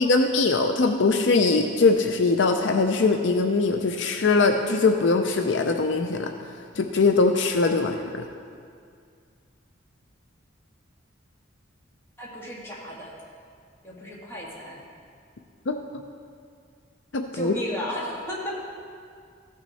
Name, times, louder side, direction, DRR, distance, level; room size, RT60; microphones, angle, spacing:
voice 1, 0.0-6.3 6.8-8.2 15.7-15.8 17.1-17.5, left 3 dB, 65° left, 5 dB, 0.5 m, -21 dB
voice 2, 12.2-13.1 13.8-14.8 17.3-18.5, equal, 15° left, -5 dB, 1.8 m, -34 dB
15.0 x 6.2 x 4.1 m, 2.2 s
head